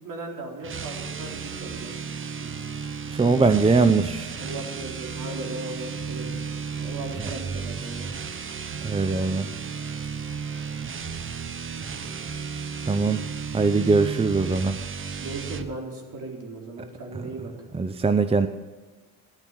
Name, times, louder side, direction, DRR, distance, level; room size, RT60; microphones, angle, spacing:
voice 1, 0.0-2.1 2.4-2.6 4.4-6.5 6.8-8.1 15.2-17.5, right 2 dB, 50° right, 0 dB, 3.8 m, -37 dB
sound 1, 0.6-15.7, right 6 dB, 30° right, 1.1 m, -34 dB
voice 2, 3.1-4.3 7.2-7.3 8.8-9.5 12.9-13.2 13.5-14.8 17.7-18.5, right 4 dB, 15° right, 10 dB, 0.7 m, -21 dB
13.5 x 11.0 x 6.3 m, 1.3 s
hypercardioid pair, 60°, 39 cm